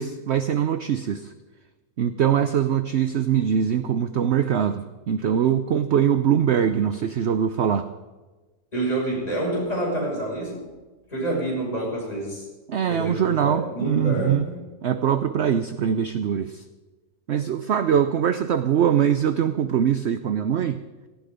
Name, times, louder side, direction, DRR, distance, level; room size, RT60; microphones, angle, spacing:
voice 1, 0.0-1.3 2.0-7.9 12.7-14.5 14.8-16.6 17.3-20.8, right 8 dB, 60° right, 10 dB, 0.8 m, -22 dB
voice 2, 8.7-10.6 11.1-12.4 12.9-14.7, right 1 dB, 25° left, -3 dB, 6.1 m, -27 dB
17.5 x 15.5 x 5.1 m, 1.2 s
omnidirectional pair, 1.7 m